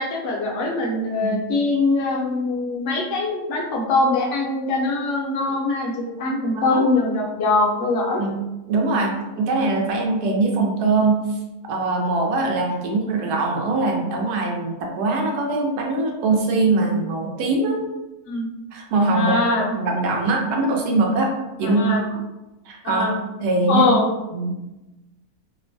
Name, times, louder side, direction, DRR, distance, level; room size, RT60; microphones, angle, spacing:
voice 1, 0.0-5.9 6.2-8.2 18.3-18.5 19.1-19.7 21.6-22.0 22.8-23.1 23.7-24.1, left 2 dB, 65° left, -1 dB, 0.8 m, -22 dB
voice 2, 6.3-6.8 8.2-8.4 8.7-11.4 11.7-17.8 18.7-21.3 21.6-22.1 22.6-23.1 23.4-23.9 24.3-24.5, right 3 dB, 80° right, 0 dB, 1.2 m, -22 dB
3.0 x 2.1 x 2.5 m, 1.0 s
omnidirectional pair, 1.7 m